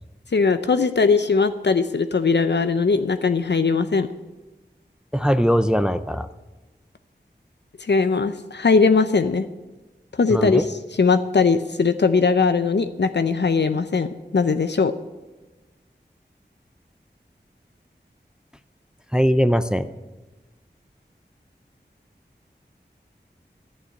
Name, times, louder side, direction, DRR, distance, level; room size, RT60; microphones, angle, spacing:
voice 1, 0.3-4.1 7.9-9.5 10.2-10.7 11.0-14.9, left 4 dB, 70° left, 10 dB, 0.6 m, -20 dB
voice 2, 5.1-6.3 10.3-10.6 19.1-19.9, equal, 5° right, 11 dB, 0.5 m, -20 dB
11.0 x 7.2 x 9.3 m, 1.1 s
wide cardioid pair, 50°, 18 cm